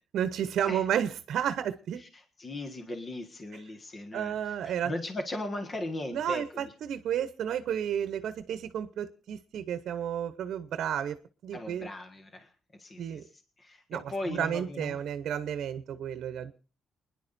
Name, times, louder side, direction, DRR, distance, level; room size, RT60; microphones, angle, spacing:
voice 1, 0.1-2.0 4.1-4.9 6.1-11.2 11.4-11.9 13.0-13.2 13.9-14.1 14.4-16.5, right 9 dB, 80° right, 11 dB, 0.8 m, -32 dB
voice 2, 2.0-6.7 11.5-12.5 12.8-13.3 13.6-15.0, left 1 dB, 30° left, 5 dB, 1.6 m, -38 dB
29.5 x 10.5 x 2.6 m, 0.34 s
cardioid pair, 120°, 0 cm